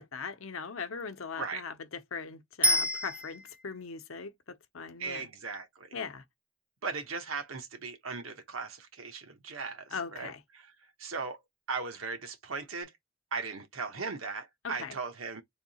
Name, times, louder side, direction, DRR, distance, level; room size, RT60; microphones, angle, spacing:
voice 1, 0.0-5.3 5.9-6.2 9.9-10.4 14.6-15.0, left 5 dB, 80° left, 0.8 m, -40 dB
Bicycle bell, 2.6-3.8 12.8-12.9, equal, 5° right, 0.4 m, -28 dB
voice 2, 5.0-5.9 6.8-10.7 11.0-11.4 11.7-12.9 13.3-15.4, right 4 dB, 80° right, 1.0 m, -38 dB
3.5 x 2.7 x 4.1 m
head